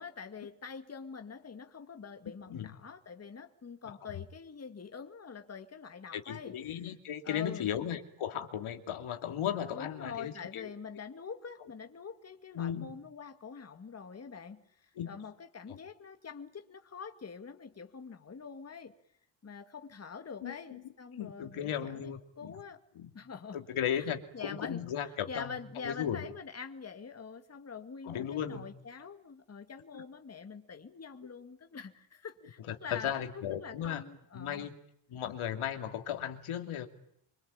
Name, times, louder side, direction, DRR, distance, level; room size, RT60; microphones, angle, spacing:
voice 1, 0.0-6.9 7.2-7.7 9.7-18.9 19.4-22.8 23.1-23.6 23.9-24.1 24.3-34.7, left 6 dB, 30° left, 7 dB, 2.1 m, -45 dB
voice 2, 6.1-10.7 12.5-12.9 15.0-15.1 20.4-20.8 21.2-22.6 23.0-23.1 23.5-25.6 25.8-26.3 28.0-28.7 29.9-30.0 32.7-34.0 34.3-34.7 35.1-36.9, left 9 dB, 80° left, 6 dB, 2.7 m, -36 dB
26.0 x 24.5 x 8.8 m, 0.71 s
cardioid pair, 130°, 49 cm